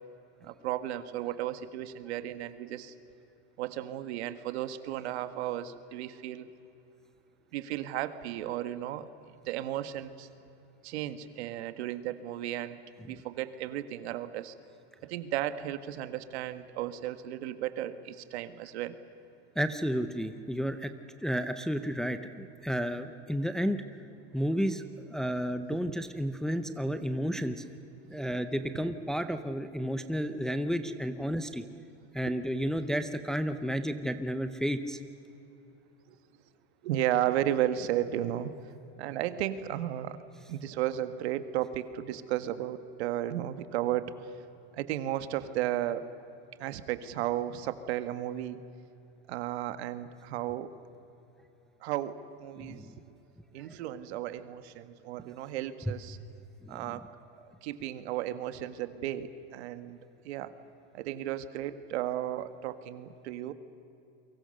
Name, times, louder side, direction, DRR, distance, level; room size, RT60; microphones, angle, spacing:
voice 1, 0.4-2.9 3.6-6.5 7.5-10.3 10.8-12.8 13.1-14.5 15.0-19.0 25.7-25.8 32.3-32.4 36.8-38.5 39.0-40.2 40.5-44.1 44.7-46.1 46.6-48.6 49.3-50.7 51.8-52.9 53.5-56.2 56.7-57.0 57.3-60.0 60.3-60.5 60.9-63.5, right 12 dB, 80° right, 11 dB, 1.7 m, -34 dB
voice 2, 19.6-20.9 21.2-23.8 24.3-27.6 28.1-31.6 32.1-35.0 52.6-52.9 56.6-57.0, equal, ahead, 9 dB, 0.6 m, -32 dB
30.0 x 24.0 x 6.6 m, 2.9 s
supercardioid pair, 165°, 32 cm